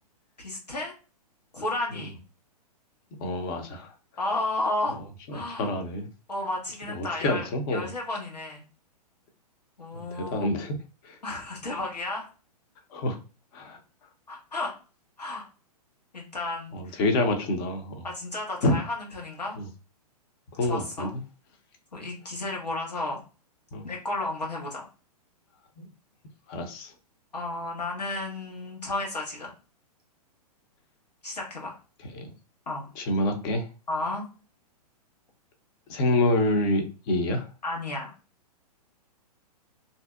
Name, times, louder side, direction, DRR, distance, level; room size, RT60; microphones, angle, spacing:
voice 1, 0.4-0.9 1.5-2.2 4.2-5.0 5.3-5.7 6.3-8.6 9.8-10.5 11.2-12.3 14.3-14.7 15.2-15.5 16.1-17.0 18.0-19.6 20.7-21.1 21.9-23.2 23.8-24.9 27.3-29.5 31.2-31.8 32.7-32.9 33.9-34.2 37.6-38.1, left 2 dB, 90° left, -1 dB, 1.1 m, -32 dB
voice 2, 3.2-3.9 5.3-6.1 6.9-7.9 9.9-11.2 12.9-13.2 13.5-13.8 16.7-18.0 18.6-18.8 19.6-19.7 20.5-21.1 23.7-23.9 25.8-25.9 26.5-26.9 32.1-32.3 33.0-33.7 35.9-37.5, left 1 dB, 35° left, 4 dB, 0.6 m, -27 dB
2.6 x 2.0 x 2.3 m, 0.34 s
figure-of-eight pair, 115°, 20 cm